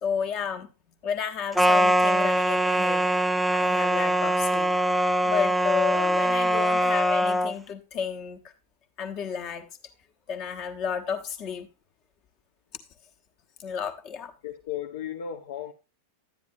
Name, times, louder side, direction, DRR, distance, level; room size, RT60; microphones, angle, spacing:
voice 1, 0.0-0.7 1.0-3.1 3.5-4.7 5.2-8.5 9.0-9.7 10.3-11.7 13.6-14.3, left 7 dB, 40° left, 1.2 m, -31 dB
sound 1, 1.6-7.5, right 1 dB, ahead, 0.5 m, -23 dB
voice 2, 14.4-15.7, left 9 dB, 55° left, 0.6 m, -35 dB
11.0 x 9.3 x 2.6 m
figure-of-eight pair, 90°, 0 cm